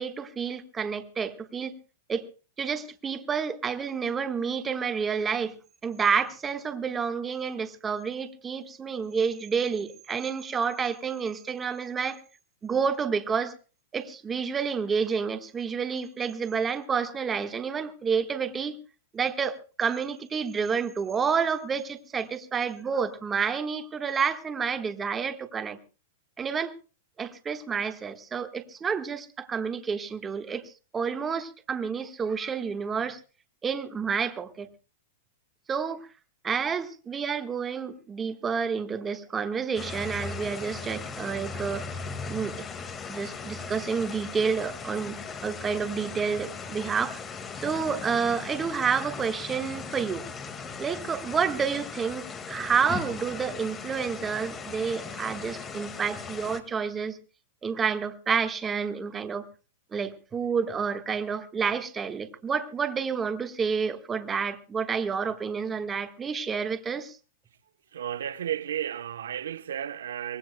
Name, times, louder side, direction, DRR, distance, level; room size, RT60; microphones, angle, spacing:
voice 1, 0.0-1.7 2.1-2.3 2.6-5.5 5.8-12.2 12.6-13.5 13.9-18.8 19.1-25.8 26.4-26.7 27.2-33.2 33.6-34.7 35.7-36.1 36.4-41.9 42.3-42.6 43.1-47.2 47.5-50.2 50.8-57.2 57.6-59.4 59.9-67.2, right 6 dB, 15° right, 1.4 m, -29 dB
sound 1, 39.8-56.6, left 5 dB, 20° left, 1.9 m, -38 dB
voice 2, 67.9-70.4, right 10 dB, 90° right, 0.9 m, -33 dB
24.5 x 19.5 x 2.2 m
supercardioid pair, 145°, 0 cm